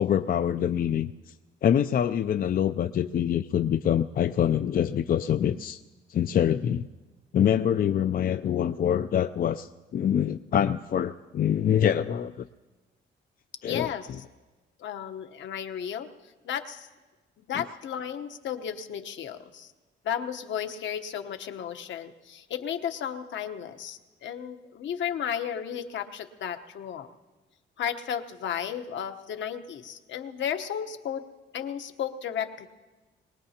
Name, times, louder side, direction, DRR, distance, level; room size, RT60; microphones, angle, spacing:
voice 1, 0.0-1.3 1.6-5.8 6.1-6.9 7.3-12.4 13.6-13.9, left 9 dB, 45° left, 10 dB, 0.4 m, -25 dB
voice 2, 13.6-14.1 14.8-16.1 16.4-16.9 17.5-19.7 20.0-27.1 27.8-31.2 31.5-32.7, left 8 dB, 70° left, 8 dB, 1.1 m, -34 dB
22.5 x 19.0 x 2.9 m, 1.2 s
cardioid pair, 90°, 20 cm